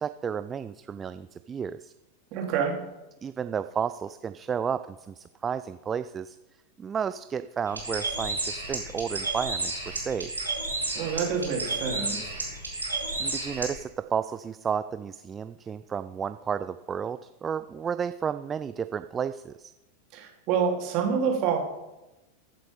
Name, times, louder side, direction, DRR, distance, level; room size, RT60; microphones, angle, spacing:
voice 1, 0.0-1.9 3.2-6.4 6.8-10.3 13.2-19.7, right 7 dB, 20° right, 12 dB, 0.4 m, -32 dB
voice 2, 2.3-2.8 10.9-12.3 20.1-21.6, right 6 dB, 40° right, 0 dB, 3.1 m, -27 dB
Bird, 7.7-13.7, right 2 dB, 85° right, 4.0 m, -32 dB
14.5 x 7.6 x 5.3 m, 0.99 s
figure-of-eight pair, 90°, 0 cm